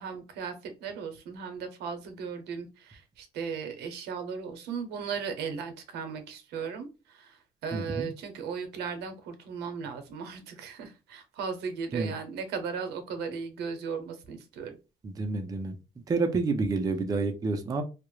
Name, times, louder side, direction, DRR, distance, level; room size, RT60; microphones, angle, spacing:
voice 1, 0.0-14.8, right 6 dB, 80° right, 7 dB, 0.7 m, -37 dB
voice 2, 7.7-8.1 11.9-12.1 15.0-15.8 16.1-17.8, right 3 dB, 20° right, 5 dB, 0.4 m, -29 dB
2.2 x 2.0 x 3.0 m, 0.30 s
cardioid pair, 110°, 17 cm